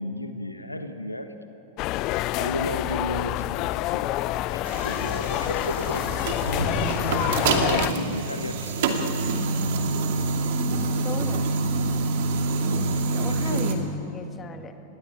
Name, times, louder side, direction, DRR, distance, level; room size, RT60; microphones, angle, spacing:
voice 1, 0.0-1.3 2.4-4.1 4.5-6.5 7.5-9.1 13.4-13.7, left 1 dB, 85° left, 8 dB, 1.5 m, -33 dB
sound 1, 1.8-7.9, left 16 dB, 40° left, 0.5 m, -27 dB
Thunder, 3.1-3.2 3.4-10.8 12.4-12.5, equal, 90° right, 4.4 m, -36 dB
sound 2, 4.6-13.7, right 3 dB, 55° right, 2.5 m, -26 dB
voice 2, 7.8-8.4 11.0-11.4 13.1-14.7, left 6 dB, 20° left, 6 dB, 2.1 m, -38 dB
27.5 x 20.0 x 9.1 m, 2.9 s
figure-of-eight pair, 90°, 0 cm